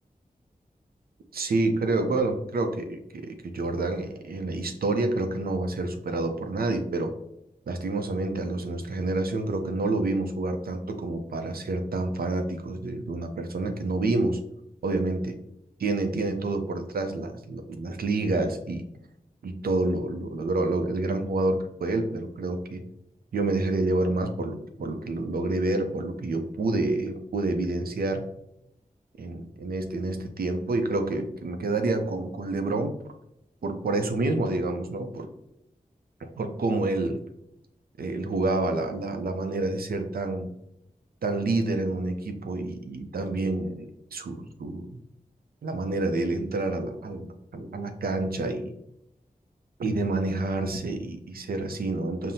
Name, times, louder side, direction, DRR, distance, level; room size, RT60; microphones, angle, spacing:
voice 1, 1.3-7.1 7.7-14.4 14.8-15.4 15.8-18.8 19.4-22.8 23.3-28.2 29.2-33.0 33.6-35.3 36.2-37.2 38.0-40.5 41.2-45.0 45.6-48.7 49.8-52.3, right 2 dB, 90° right, 7 dB, 0.5 m, -28 dB
5.6 x 2.0 x 2.7 m, 0.81 s
cardioid pair, 45°, 15 cm